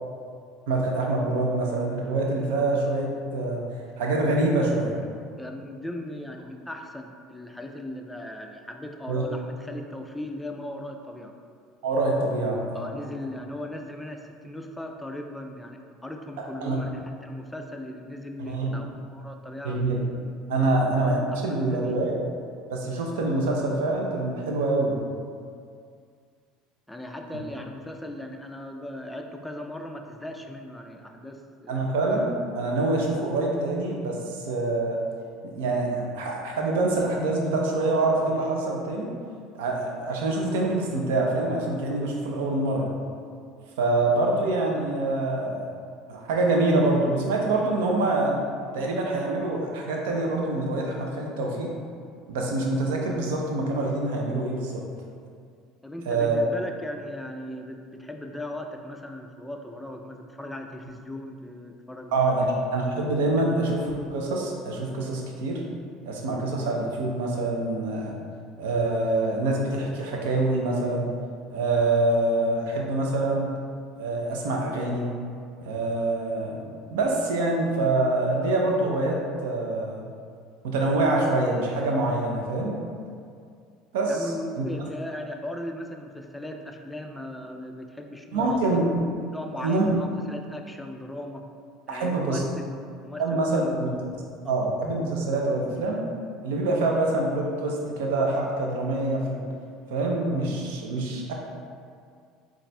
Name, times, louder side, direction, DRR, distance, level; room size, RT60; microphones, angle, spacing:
voice 1, 0.7-3.6 4.0-4.9 9.1-9.2 11.8-12.9 16.4-16.8 18.4-18.8 19.6-20.0 20.5-22.2 22.7-25.0 31.7-35.0 35.4-39.1 39.6-42.9 43.8-45.7 46.1-48.3 48.7-51.7 52.3-54.8 56.1-56.4 62.1-62.4 62.7-63.8 64.1-65.6 66.1-68.1 68.6-71.1 71.5-73.5 74.0-75.1 75.6-80.0 80.6-82.8 83.9-84.2 84.5-84.7 88.3-88.9 89.6-89.9 91.9-92.4 93.2-93.9 94.5-96.0 96.4-99.4 99.9-101.3, right 2 dB, 80° right, 0 dB, 0.6 m, -25 dB
voice 2, 5.4-11.3 12.7-19.8 20.6-20.7 21.3-22.0 26.9-31.9 55.8-62.4 63.4-63.5 84.1-88.9 89.3-91.4 91.9-92.8 93.0-93.7 94.1-94.6, left 1 dB, 5° left, 3 dB, 0.3 m, -38 dB
4.0 x 2.4 x 3.3 m, 2.2 s
hypercardioid pair, 85°, 0 cm